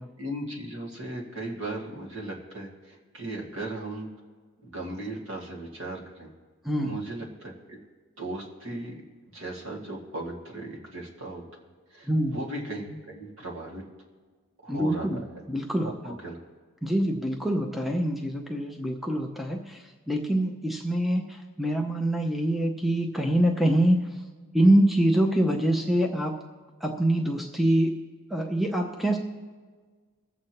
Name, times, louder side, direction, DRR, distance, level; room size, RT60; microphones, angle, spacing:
voice 1, 0.2-4.1 4.6-6.3 6.8-7.8 8.2-9.0 9.3-11.4 11.9-13.9 14.6-15.3 15.8-16.4, right 1 dB, 60° right, -2 dB, 2.1 m, -37 dB
voice 2, 6.6-7.0 12.1-12.4 14.7-15.2 15.5-16.2 16.8-19.8 20.1-24.0 24.5-26.4 26.8-28.0 28.3-29.2, right 1 dB, ahead, 2 dB, 0.6 m, -25 dB
23.5 x 7.8 x 2.9 m, 1.5 s
head